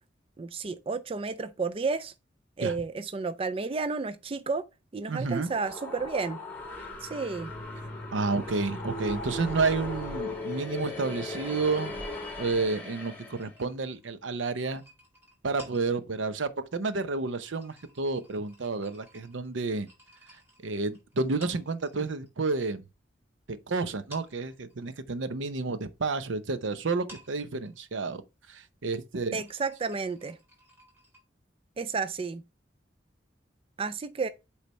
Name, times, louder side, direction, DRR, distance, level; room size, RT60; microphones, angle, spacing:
voice 1, 0.4-2.1 2.6-4.7 4.9-6.4 7.0-7.5 29.3-30.4 31.8-32.4 33.8-34.3, right 4 dB, 30° right, 0.4 m, -31 dB
voice 2, 5.1-5.5 8.1-12.0 12.4-14.8 15.4-19.9 20.6-22.8 23.7-28.2 28.5-29.4, right 3 dB, 80° right, 0.7 m, -30 dB
sound 1, 5.2-13.5, left 2 dB, 10° left, 2.0 m, -38 dB
sound 2, 13.3-22.3 22.6-23.6 23.9-31.2, equal, 15° right, 4.4 m, -55 dB
8.2 x 3.3 x 4.2 m
head